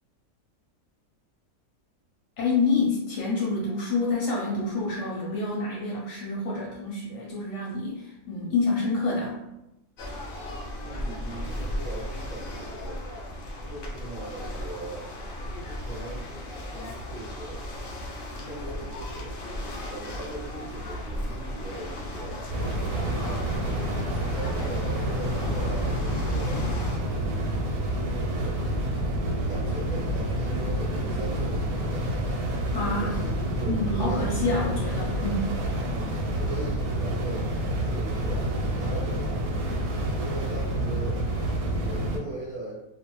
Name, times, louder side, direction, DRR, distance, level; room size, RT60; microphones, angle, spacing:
voice 1, 2.4-9.4 32.7-33.1 33.7-35.6, left 3 dB, 65° left, -4 dB, 0.8 m, -27 dB
sound 1, 10.0-27.0, left 1 dB, 85° left, 0.4 m, -36 dB
voice 2, 10.7-13.0 13.7-15.1 15.6-16.3 16.7-17.6 18.3-19.4 19.9-22.4 22.9-23.5 24.3-27.4 28.0-28.6 29.5-32.4 33.0-34.6 35.9-37.5 37.9-39.5 40.1-42.8, right 2 dB, 45° right, -9 dB, 0.6 m, -39 dB
sound 2, 22.5-42.2, right 1 dB, 85° right, 1.1 m, -28 dB
2.5 x 2.1 x 2.9 m, 0.92 s
omnidirectional pair, 1.6 m